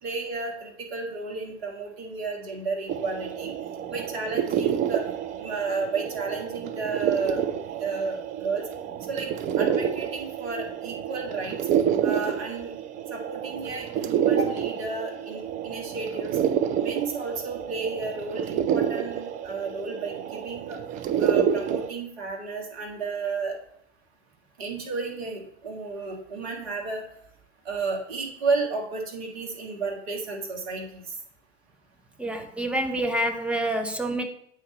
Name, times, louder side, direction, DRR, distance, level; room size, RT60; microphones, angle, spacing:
voice 1, 0.0-3.5 3.9-5.0 5.3-7.4 7.8-8.6 9.1-9.3 9.6-11.6 12.0-12.7 13.1-16.4 16.8-20.8 21.2-23.6 24.6-27.0 27.7-31.0, right 4 dB, 60° right, 1 dB, 2.0 m, -32 dB
sound 1, 2.9-21.9, right 9 dB, 25° right, 0.4 m, -28 dB
voice 2, 32.2-34.2, right 1 dB, 5° right, 5 dB, 0.7 m, -27 dB
7.9 x 4.0 x 5.2 m, 0.70 s
figure-of-eight pair, 85°, 35 cm